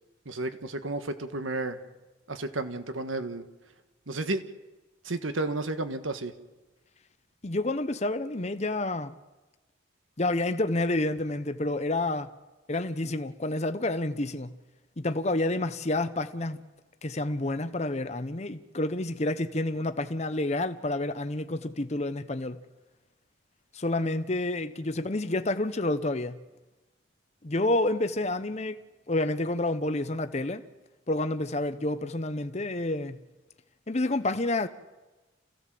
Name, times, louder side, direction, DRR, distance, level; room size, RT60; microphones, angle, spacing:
voice 1, 0.2-1.8 2.3-3.4 4.1-4.4 5.0-6.3, right 2 dB, 90° right, 1.6 m, -32 dB
voice 2, 7.4-9.1 10.2-12.3 12.7-14.5 15.0-16.6 17.0-22.6 23.7-26.4 27.4-28.8 29.1-30.6 31.1-33.2 33.9-34.7, left 2 dB, 35° left, 0.8 m, -29 dB
28.0 x 16.0 x 7.7 m
head